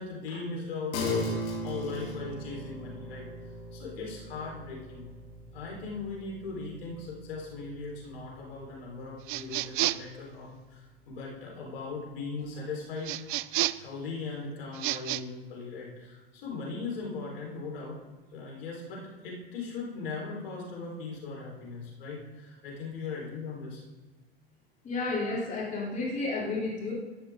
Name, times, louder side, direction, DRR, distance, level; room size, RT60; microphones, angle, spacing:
voice 1, 0.0-3.3 3.7-5.1 5.5-13.1 13.7-18.0 18.3-23.8, left 4 dB, 70° left, -2 dB, 4.4 m, -38 dB
sound 1, 0.9-10.7, equal, 50° left, 3.5 m, -40 dB
sound 2, 9.3-10.2 13.0-13.9 14.7-15.2, right 17 dB, 60° right, 0.5 m, -30 dB
voice 2, 24.8-26.9, left 3 dB, 25° left, -4 dB, 3.3 m, -31 dB
13.0 x 10.5 x 3.8 m, 1.3 s
hypercardioid pair, 95°, 30 cm